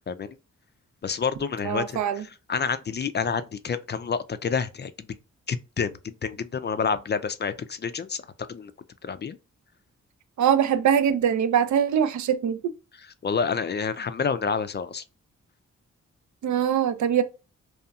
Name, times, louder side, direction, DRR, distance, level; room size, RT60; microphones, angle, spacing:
voice 1, 0.1-0.4 1.0-2.0 2.5-5.1 5.5-8.2 8.5-8.7 9.0-9.4 13.2-15.0, left 6 dB, 35° left, 0.4 m, -28 dB
voice 2, 1.6-2.2 10.4-12.7 16.4-17.2, right 8 dB, 65° right, 0.5 m, -22 dB
2.8 x 2.3 x 2.3 m
cardioid pair, 50°, 31 cm